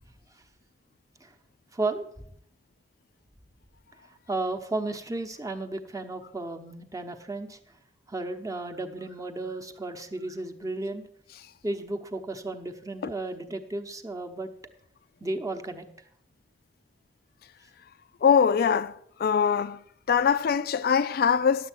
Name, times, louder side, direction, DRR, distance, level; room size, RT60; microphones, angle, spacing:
voice 1, 1.7-2.3 4.3-7.6 8.1-11.0 11.6-14.5 15.2-15.9, right 2 dB, 20° right, 0.9 m, -33 dB
voice 2, 18.2-18.9 19.2-19.8 20.1-21.7, left 7 dB, 60° left, 0.4 m, -22 dB
11.0 x 7.3 x 6.0 m
head